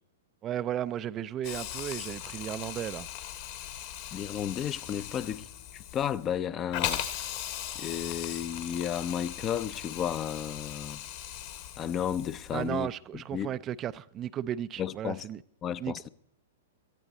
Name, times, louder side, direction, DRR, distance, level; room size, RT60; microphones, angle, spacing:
voice 1, 0.4-3.1 12.5-15.4 15.8-16.0, right 11 dB, 30° right, 0.4 m, -34 dB
Hiss, 1.4-12.7, left 11 dB, 50° left, 1.9 m, -39 dB
voice 2, 4.1-7.0 7.7-11.0 11.8-12.9 13.1-13.5 14.8-15.2 15.6-16.1, left 9 dB, 25° left, 0.6 m, -33 dB
18.0 x 14.0 x 4.1 m
figure-of-eight pair, 110°, 0 cm